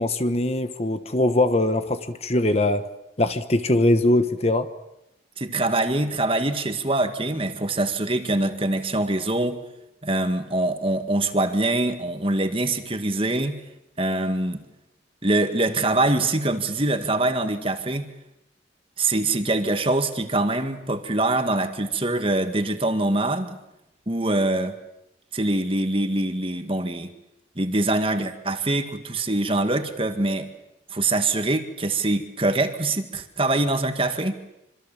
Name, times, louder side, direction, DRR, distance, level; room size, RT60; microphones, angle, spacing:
voice 1, 0.0-2.9 3.2-4.7, left 1 dB, 35° left, 10 dB, 1.2 m, -21 dB
voice 2, 5.4-9.6 10.0-13.6 14.0-14.6 15.2-18.1 19.0-23.6 24.1-24.8 25.3-27.1 27.6-30.5 30.9-34.4, right 2 dB, 30° right, 7 dB, 2.0 m, -24 dB
26.0 x 26.0 x 7.5 m, 0.85 s
head